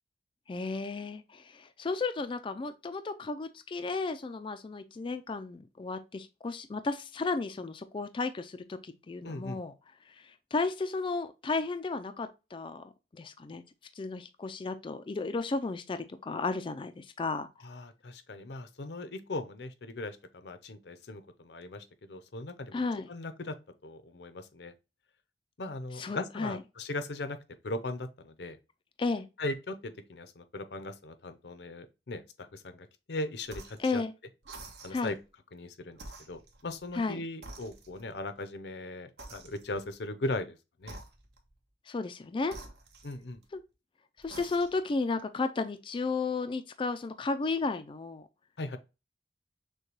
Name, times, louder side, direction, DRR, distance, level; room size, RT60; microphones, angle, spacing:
voice 1, 0.5-9.7 10.1-12.8 13.1-13.6 14.0-17.5 22.7-23.1 25.9-26.6 29.0-29.3 33.8-34.1 34.9-35.1 36.9-37.2 41.9-42.6 43.5-43.6 44.2-48.3, left 3 dB, 30° left, 0.3 m, -33 dB
voice 2, 9.2-9.6 17.6-23.5 23.8-24.7 25.6-27.4 27.6-28.6 29.4-32.2 32.5-34.0 34.8-35.1 35.5-36.0 36.3-41.0 43.0-43.4 48.6-48.8, left 2 dB, 70° left, 0.6 m, -38 dB
sound 1, 33.4-33.9 34.4-35.2 35.9-37.1 37.4-38.2 39.2-39.9 40.8-41.5 42.4-43.6 44.2-44.9, right 2 dB, 65° right, 1.0 m, -49 dB
6.4 x 2.2 x 3.0 m
head